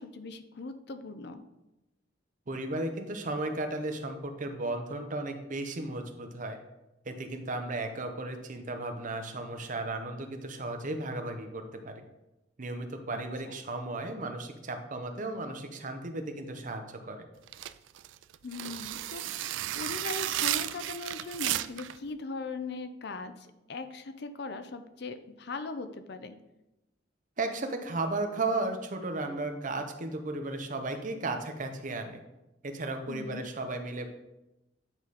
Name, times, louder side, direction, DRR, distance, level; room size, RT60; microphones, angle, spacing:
voice 1, 0.0-1.4 13.1-13.2 18.4-19.4 19.7-26.4 33.1-33.4, left 3 dB, 60° left, 10 dB, 0.6 m, -39 dB
voice 2, 2.5-6.6 7.0-11.9 12.6-17.3 27.4-32.2 32.6-34.1, right 2 dB, 45° right, 6 dB, 0.8 m, -35 dB
sound 1, 17.5-22.0, right 13 dB, 85° right, 0.3 m, -33 dB
8.9 x 4.8 x 4.2 m, 0.95 s
head